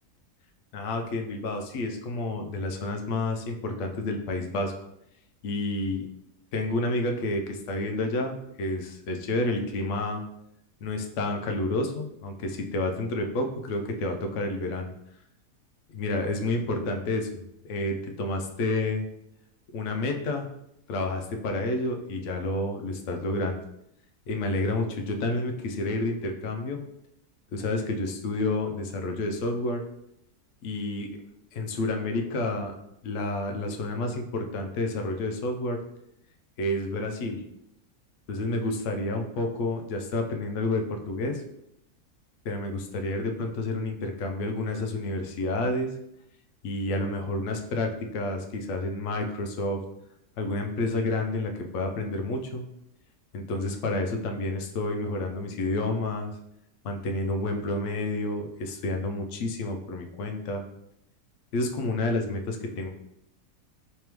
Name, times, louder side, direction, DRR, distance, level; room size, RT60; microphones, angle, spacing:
voice 1, 0.7-4.7 5.4-6.1 6.5-10.2 10.8-14.9 15.9-17.3 17.7-19.1 19.7-20.5 20.9-23.6 24.3-26.8 27.5-29.8 30.6-31.1 31.5-32.7 33.0-35.8 36.6-37.4 38.3-41.4 42.4-46.0 46.6-49.8 50.4-52.7 53.3-56.3 56.8-60.7 61.5-62.9, left 2 dB, 65° left, 4 dB, 0.8 m, -29 dB
3.4 x 3.3 x 3.0 m, 0.78 s
omnidirectional pair, 1.6 m